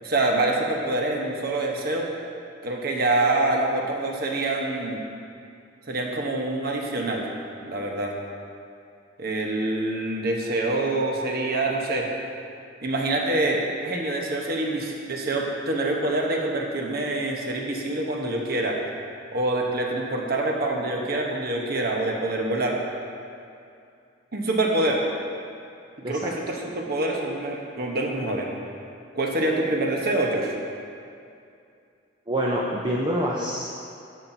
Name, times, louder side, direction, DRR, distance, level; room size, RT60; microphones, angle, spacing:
voice 1, 0.0-2.1 2.6-5.0 5.9-7.3 7.7-8.1 9.2-12.1 12.8-18.8 19.3-22.8 24.3-25.0 26.1-28.5 29.1-30.5, right 2 dB, 50° right, 0 dB, 1.0 m, -26 dB
voice 2, 32.3-33.7, equal, 20° right, -4 dB, 0.6 m, -26 dB
11.5 x 7.3 x 2.7 m, 2.5 s
head